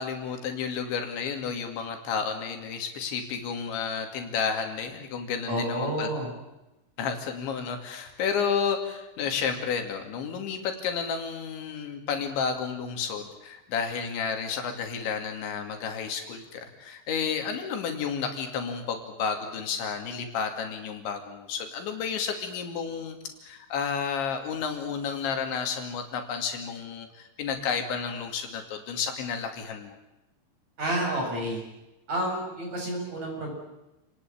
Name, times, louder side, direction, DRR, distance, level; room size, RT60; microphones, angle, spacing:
voice 1, 0.0-6.1 7.0-23.2 23.4-30.0, left 6 dB, 75° left, 4 dB, 4.9 m, -31 dB
voice 2, 5.5-6.3 30.8-31.6 32.1-33.5, right 1 dB, 35° right, 0 dB, 8.4 m, -30 dB
29.0 x 19.5 x 8.8 m, 0.96 s
omnidirectional pair, 5.2 m